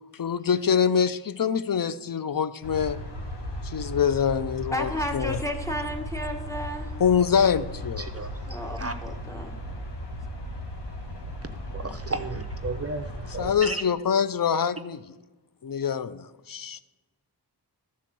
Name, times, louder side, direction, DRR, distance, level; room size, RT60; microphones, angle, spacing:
voice 1, 0.1-3.0 3.6-5.4 7.0-8.1 13.3-15.2 15.6-16.8, left 7 dB, 55° left, 14 dB, 0.6 m, -25 dB
sound 1, 2.6-13.5, equal, 75° left, 1.4 m, -36 dB
voice 2, 4.7-6.9 8.5-9.6, equal, 5° left, 2 dB, 1.5 m, -32 dB
voice 3, 8.0-8.3 8.8-8.9 11.7-13.1 13.3-13.8, right 3 dB, 35° right, 8 dB, 0.6 m, -33 dB
12.5 x 4.2 x 7.6 m, 1.2 s
wide cardioid pair, 65°, 41 cm